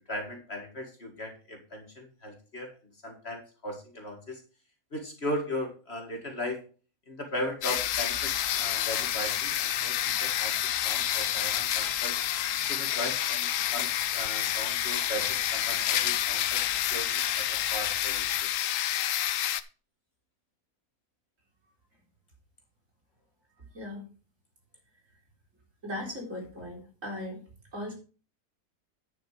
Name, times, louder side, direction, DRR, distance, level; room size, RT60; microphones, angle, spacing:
voice 1, 0.1-2.7 3.0-4.4 4.9-6.6 7.1-10.5 10.8-12.2 12.7-16.6 16.9-18.5, left 1 dB, 40° left, 2 dB, 2.1 m, -37 dB
sound 1, 7.6-19.6, left 12 dB, 65° left, 0.9 m, -29 dB
sound 2, 7.7-18.4, right 3 dB, 75° right, 2.4 m, -49 dB
voice 2, 25.8-27.4 27.7-27.9, left 1 dB, 50° right, -1 dB, 4.3 m, -37 dB
10.5 x 5.9 x 4.9 m, 0.37 s
omnidirectional pair, 1.7 m